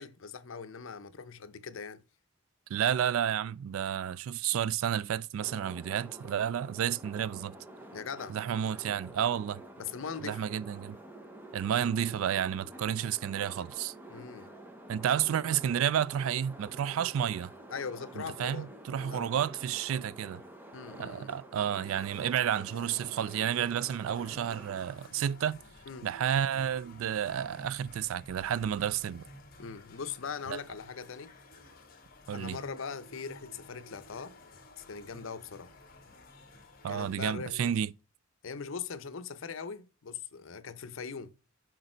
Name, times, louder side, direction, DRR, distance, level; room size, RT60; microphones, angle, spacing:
voice 1, 0.0-2.0 7.9-8.4 9.8-10.4 14.1-14.5 17.7-18.7 19.0-19.3 20.7-21.3 25.9-26.1 29.6-31.3 32.3-34.3 34.8-35.8 36.9-37.7 38.4-41.3, left 5 dB, 70° left, 0.6 m, -41 dB
voice 2, 2.7-7.6 8.3-9.6 10.2-11.0 11.5-13.9 14.9-17.5 18.2-20.4 21.0-25.6 26.0-29.3 30.5-30.6 32.3-32.6 36.8-37.9, right 9 dB, 80° right, 0.3 m, -31 dB
sound 1, 5.4-24.8, right 1 dB, 10° right, 0.7 m, -49 dB
sound 2, 21.8-37.4, left 2 dB, 45° left, 1.1 m, -54 dB
6.6 x 3.9 x 4.3 m
head